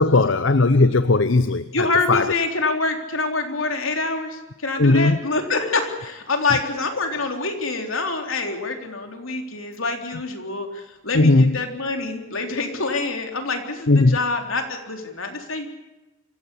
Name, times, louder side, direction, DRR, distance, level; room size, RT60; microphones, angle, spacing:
voice 1, 0.0-2.3 4.8-5.2 11.1-11.5 13.9-14.2, left 2 dB, 70° left, 12 dB, 0.8 m, -17 dB
voice 2, 1.7-15.7, left 3 dB, 90° left, 4 dB, 3.8 m, -26 dB
26.0 x 16.0 x 8.6 m, 1.0 s
head